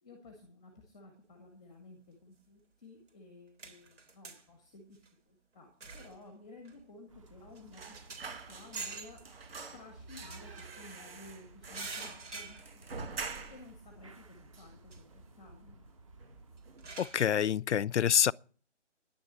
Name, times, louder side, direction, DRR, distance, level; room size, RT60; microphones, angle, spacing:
voice 1, 0.0-9.2 9.7-12.8 13.5-15.8, left 2 dB, 5° left, 0.8 m, -54 dB
sound 1, 3.1-3.2 3.6-4.4 4.9-5.1 5.8-6.2 6.6-6.8 7.3-7.4 7.5-8.4 8.7-9.3 10.2-11.1 11.7-13.0 13.4-13.5 14.9-15.0 16.6-17.3, right 3 dB, 75° right, 3.6 m, -45 dB
sound 2, 7.1-17.0, right 3 dB, 25° right, 0.9 m, -56 dB
sound 3, 7.7-9.0 9.2-13.8 14.1-14.2 14.5-15.4 15.7-15.9 16.2-16.9 17.2-17.4, right 4 dB, 55° right, 2.1 m, -46 dB
voice 2, 17.0-18.3, left 9 dB, 70° left, 0.5 m, -27 dB
10.5 x 8.9 x 7.9 m
hypercardioid pair, 170°, 36 cm